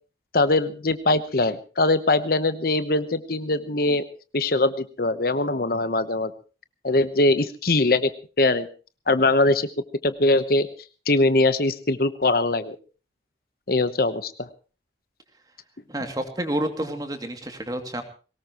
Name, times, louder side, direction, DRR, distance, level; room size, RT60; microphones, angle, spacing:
voice 1, 0.3-4.0 4.3-6.3 6.8-8.1 8.4-8.7 9.1-9.7 10.0-10.7 11.1-12.8 13.7-14.5, left 2 dB, 50° left, 12 dB, 1.0 m, -22 dB
voice 2, 15.9-18.0, right 1 dB, 20° right, 6 dB, 2.5 m, -29 dB
22.0 x 19.0 x 3.0 m, 0.35 s
head